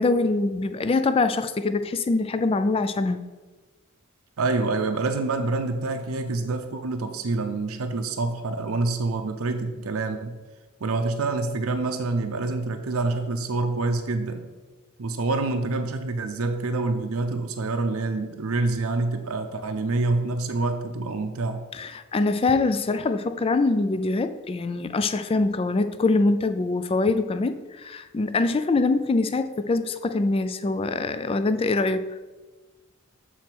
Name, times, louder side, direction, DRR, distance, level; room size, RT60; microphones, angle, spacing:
voice 1, 0.0-3.2 21.7-32.1, left 3 dB, 25° left, 11 dB, 0.3 m, -24 dB
voice 2, 4.4-10.4 10.8-14.4 15.0-21.6, right 3 dB, 75° right, 6 dB, 0.6 m, -27 dB
7.7 x 4.2 x 4.5 m, 1.2 s
head